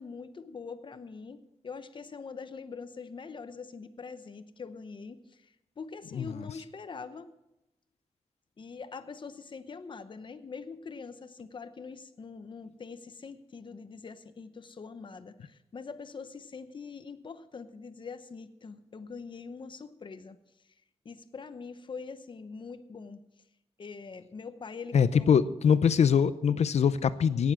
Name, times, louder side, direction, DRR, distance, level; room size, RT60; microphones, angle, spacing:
voice 1, 0.0-7.3 8.6-20.4 20.6-20.7 21.0-23.2 23.8-25.3, left 5 dB, 45° left, 10 dB, 0.8 m, -43 dB
voice 2, 24.9-27.5, left 7 dB, 80° left, 14 dB, 0.7 m, -23 dB
18.0 x 7.2 x 6.1 m, 0.89 s
wide cardioid pair, 115°, 11 cm